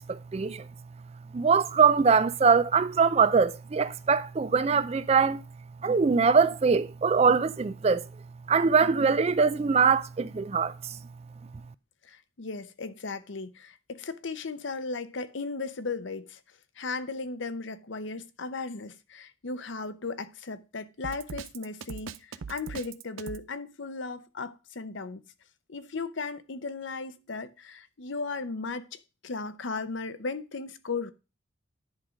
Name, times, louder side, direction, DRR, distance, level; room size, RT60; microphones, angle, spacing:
voice 1, 0.1-0.7 1.3-5.4 5.8-8.1 8.5-11.0, right 5 dB, 30° right, 0.3 m, -23 dB
voice 2, 12.0-16.4 16.8-25.2 25.7-31.1, left 4 dB, 65° left, 0.7 m, -36 dB
Drum kit, 21.0-23.5, right 6 dB, 80° right, 0.5 m, -40 dB
10.5 x 3.8 x 5.0 m
head